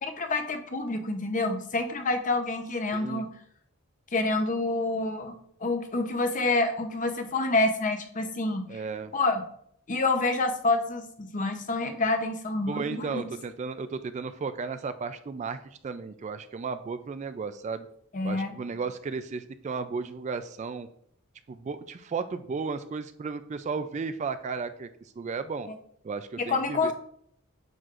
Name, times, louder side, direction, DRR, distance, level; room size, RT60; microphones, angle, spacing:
voice 1, 0.0-3.3 4.1-5.3 5.6-8.8 9.1-9.4 9.9-13.3 18.1-18.5 26.5-26.9, left 2 dB, 35° left, 6 dB, 0.8 m, -27 dB
voice 2, 2.9-3.3 8.7-9.1 12.7-15.6 15.8-17.9 18.2-20.9 21.5-24.9 25.2-25.7 26.0-26.9, right 5 dB, 30° right, 11 dB, 0.3 m, -34 dB
9.0 x 6.3 x 2.5 m, 0.67 s
head